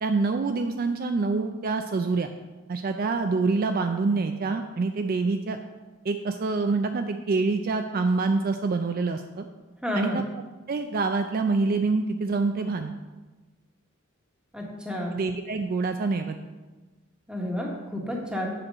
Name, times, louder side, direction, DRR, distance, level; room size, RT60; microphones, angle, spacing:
voice 1, 0.0-2.3 2.7-5.6 6.0-9.5 9.9-10.2 10.7-12.9 15.1-16.4, right 3 dB, 45° right, 6 dB, 0.4 m, -26 dB
voice 2, 9.8-10.2 14.5-15.1 17.3-18.5, left 1 dB, 5° right, -1 dB, 1.2 m, -30 dB
7.6 x 4.5 x 6.1 m, 1.2 s
head